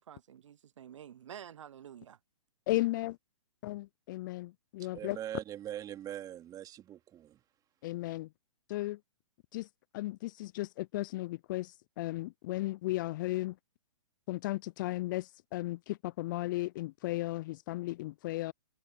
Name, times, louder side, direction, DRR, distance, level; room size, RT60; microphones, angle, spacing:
voice 1, 0.0-2.2, right 9 dB, 65° right, 0.7 m, -49 dB
voice 2, 2.7-3.1 3.6-5.2 7.8-8.3 8.7-9.0 9.5-9.7 9.9-13.6 14.3-18.5, left 18 dB, 40° left, 0.4 m, -35 dB
voice 3, 4.9-7.4, right 11 dB, 20° right, 2.6 m, -42 dB
hypercardioid pair, 125°, 17 cm